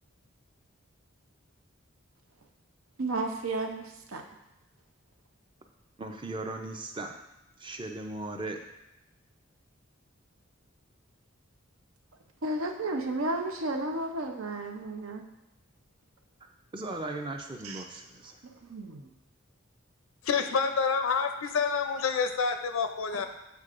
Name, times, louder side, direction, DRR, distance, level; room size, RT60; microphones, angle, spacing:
voice 1, 3.0-4.2 12.4-15.3 17.6-17.8 18.6-19.1, right 2 dB, 90° right, 3 dB, 0.7 m, -33 dB
voice 2, 6.0-7.1 7.6-8.6 16.7-18.4 23.1-23.3, right 2 dB, 25° right, 4 dB, 0.5 m, -37 dB
voice 3, 20.2-23.3, left 5 dB, 85° left, 7 dB, 0.5 m, -28 dB
8.2 x 4.5 x 2.5 m, 0.89 s
head